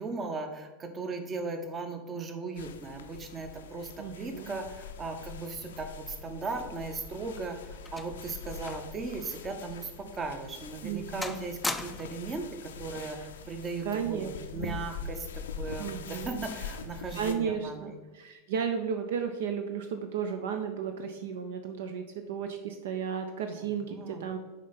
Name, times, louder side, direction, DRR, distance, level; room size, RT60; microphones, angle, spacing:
voice 1, 0.0-7.6 7.9-17.7 23.9-24.2, right 3 dB, 25° right, 6 dB, 0.8 m, -37 dB
sound 1, 2.6-17.3, left 6 dB, 65° left, 0.4 m, -43 dB
voice 2, 4.0-4.6 10.8-11.4 13.2-13.3 13.8-14.8 15.8-16.5 17.1-24.4, right 7 dB, 60° right, 6 dB, 0.5 m, -34 dB
sound 2, 7.5-9.0 9.3-9.5 10.1-10.3 10.7-11.0 11.2-12.3 13.3-13.5, left 2 dB, 10° left, 0.4 m, -39 dB
6.2 x 4.3 x 4.0 m, 1.3 s
figure-of-eight pair, 85°, 0 cm